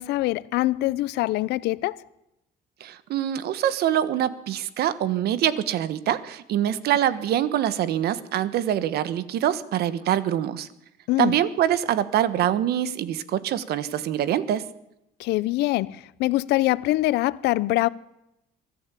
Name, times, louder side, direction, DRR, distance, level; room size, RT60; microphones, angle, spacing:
voice 1, 0.0-2.0 11.1-11.4 15.2-17.9, left 17 dB, 85° left, 0.7 m, -24 dB
voice 2, 2.8-10.7 11.2-14.7, right 11 dB, 70° right, 1.3 m, -24 dB
23.5 x 13.0 x 8.4 m
cardioid pair, 110°, 17 cm